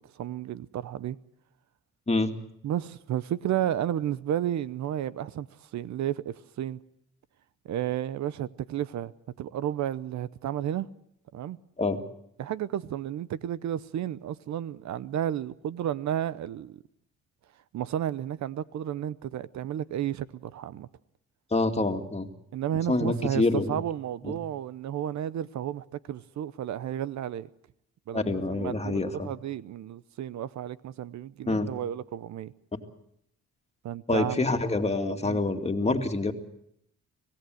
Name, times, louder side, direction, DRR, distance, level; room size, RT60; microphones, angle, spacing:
voice 1, 0.1-1.2 2.6-5.5 5.7-6.8 7.6-9.1 9.4-10.9 11.3-11.6 12.4-16.8 17.7-20.9 22.5-27.5 28.1-32.5 33.8-34.4 35.2-35.4, right 11 dB, 65° right, 0.8 m, -32 dB
voice 2, 21.5-22.3 22.9-23.8 24.3-24.4 28.1-29.3 31.5-31.7 34.1-36.3, left 2 dB, 20° left, 2.3 m, -26 dB
25.5 x 17.0 x 7.8 m
cardioid pair, 90°, 30 cm